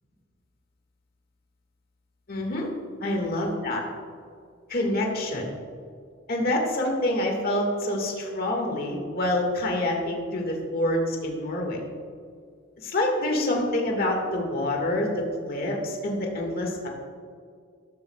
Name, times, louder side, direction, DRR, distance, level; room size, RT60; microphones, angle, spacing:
voice 1, 2.3-2.7 3.0-3.8 4.7-5.4 6.3-11.8 12.8-16.9, left 1 dB, 50° left, 1 dB, 1.8 m, -27 dB
13.0 x 12.5 x 2.3 m, 2.2 s
head